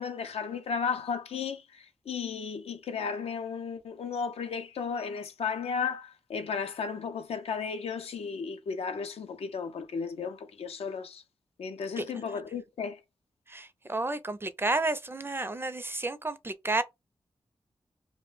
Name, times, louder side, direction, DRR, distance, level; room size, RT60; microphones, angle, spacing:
voice 1, 0.0-11.2 11.6-13.0, left 6 dB, 80° left, 0.4 m, -34 dB
voice 2, 13.5-16.8, right 2 dB, 20° right, 0.4 m, -31 dB
2.3 x 2.1 x 3.1 m
cardioid pair, 45°, 10 cm